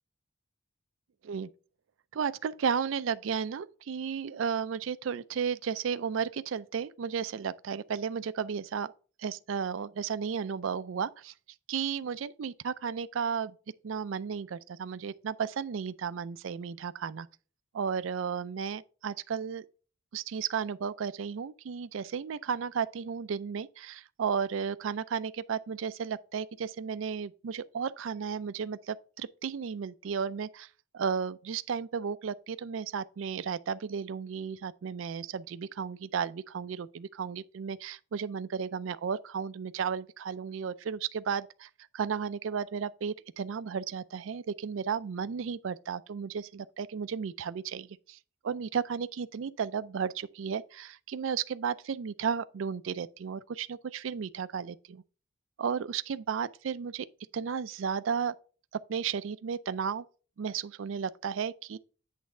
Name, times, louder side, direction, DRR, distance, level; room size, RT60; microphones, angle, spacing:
voice 1, 2.1-8.9 9.2-11.3 11.7-13.5 13.8-17.3 17.7-19.7 20.1-30.7 30.9-48.2 48.4-55.0 55.6-57.1 57.3-58.3 58.7-60.0 60.4-61.8, right 6 dB, 75° right, 0.4 m, -34 dB
8.4 x 3.4 x 5.4 m
head